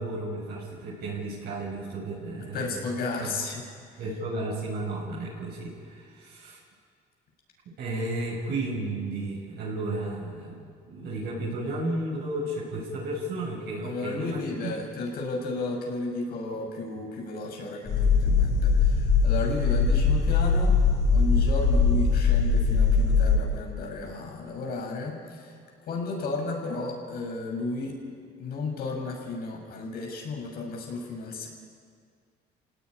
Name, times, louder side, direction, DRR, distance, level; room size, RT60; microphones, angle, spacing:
voice 1, 0.0-2.8 3.2-3.4 4.0-6.6 7.7-10.6 10.9-14.8, right 2 dB, 70° right, -5 dB, 7.3 m, -33 dB
voice 2, 2.3-3.6 13.8-20.8 21.1-25.5 25.8-28.0 28.4-31.5, left 3 dB, 65° left, 1 dB, 7.1 m, -33 dB
sound 1, 17.9-23.4, left 4 dB, 40° left, 6.1 m, -21 dB
29.0 x 18.0 x 9.9 m, 2.1 s
cardioid pair, 110°, 17 cm